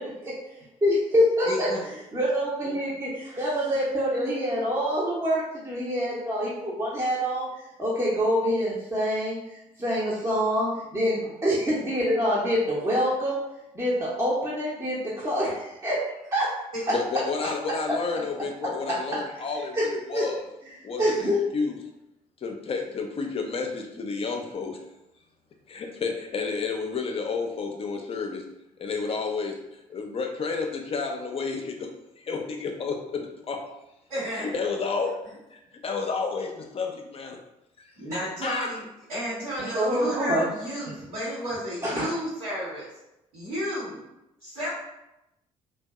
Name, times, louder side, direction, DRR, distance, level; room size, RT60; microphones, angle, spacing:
voice 1, 0.8-1.7 2.1-9.4 9.8-13.5 13.7-16.0 16.3-16.5 16.9-17.0 19.7-19.8 20.1-20.2 21.0-21.4 39.7-40.5 41.8-42.1, equal, 15° right, -7 dB, 0.7 m, -25 dB
voice 2, 1.4-1.8 17.4-17.5 34.1-34.5 38.0-38.8 39.1-42.9 43.3-44.0 44.4-44.7, equal, 80° right, -13 dB, 1.1 m, -32 dB
voice 3, 16.9-20.5 20.8-21.8 22.4-24.8 25.7-28.4 28.8-33.6 34.3-35.2 35.5-37.4 37.8-37.9 38.4-38.7, left 4 dB, 30° left, 2 dB, 0.5 m, -31 dB
2.6 x 2.2 x 2.3 m, 0.89 s
figure-of-eight pair, 45°, 18 cm